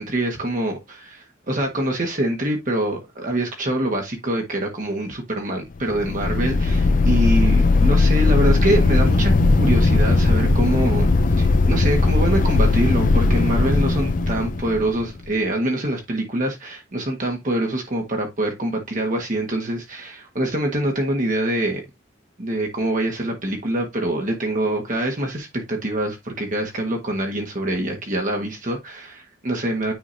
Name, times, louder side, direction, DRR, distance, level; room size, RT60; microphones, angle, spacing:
voice 1, 0.0-11.1 11.4-21.8 22.4-29.9, right 1 dB, 45° right, 1.5 m, -25 dB
sound 1, 5.8-15.2, left 3 dB, 45° left, 0.6 m, -18 dB
9.4 x 3.8 x 2.7 m
head